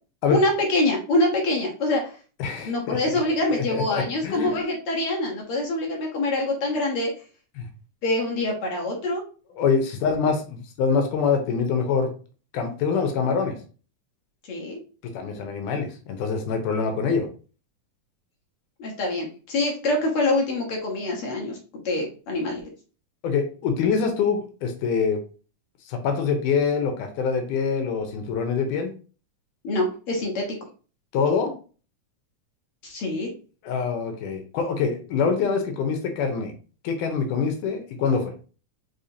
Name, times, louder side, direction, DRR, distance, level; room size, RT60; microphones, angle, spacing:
voice 1, 0.3-2.1 2.6-7.1 8.0-9.2 14.5-14.8 18.8-21.6 21.8-22.6 29.6-30.4 32.8-33.3, left 2 dB, 60° left, -1 dB, 1.6 m, -25 dB
voice 2, 2.4-3.2 3.5-4.6 7.6-7.7 9.6-12.1 12.5-13.6 15.1-17.3 23.2-25.2 25.9-28.9 31.1-31.5 33.6-36.5 36.8-38.3, left 5 dB, 80° left, 5 dB, 2.3 m, -25 dB
5.4 x 3.4 x 2.7 m, 0.37 s
omnidirectional pair, 3.6 m